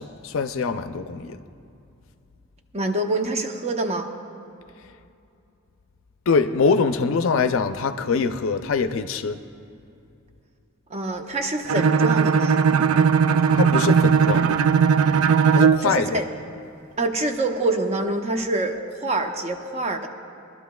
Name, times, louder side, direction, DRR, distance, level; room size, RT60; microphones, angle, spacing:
voice 1, 0.0-1.4 6.3-9.4 13.5-14.5 15.5-16.2, left 5 dB, 65° left, 0.4 m, -23 dB
voice 2, 2.7-4.1 10.9-12.6 15.8-16.2 17.0-20.1, right 2 dB, 30° right, 0.7 m, -26 dB
Bowed string instrument, 11.7-15.9, right 6 dB, 80° right, 0.3 m, -18 dB
21.0 x 12.0 x 2.3 m
head